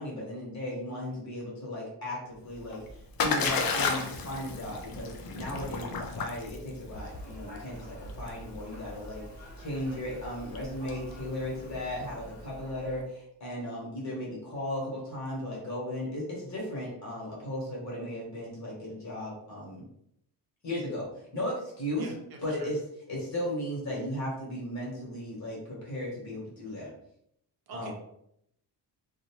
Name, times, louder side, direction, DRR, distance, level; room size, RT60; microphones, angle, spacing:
voice 1, 0.0-9.2 9.6-19.8 20.6-21.1 21.3-22.1 22.4-22.8 23.1-26.9 27.7-27.9, left 1 dB, 40° left, -4 dB, 1.1 m, -36 dB
Splash splatter, 2.5-12.3, left 4 dB, 55° left, 0.5 m, -34 dB
sound 1, 6.9-13.0, equal, 20° right, 0.9 m, -49 dB
voice 2, 22.0-22.7 26.7-26.9 27.7-27.9, right 3 dB, 60° right, 1 dB, 0.6 m, -46 dB
2.7 x 2.1 x 2.9 m, 0.75 s
wide cardioid pair, 160°, 43 cm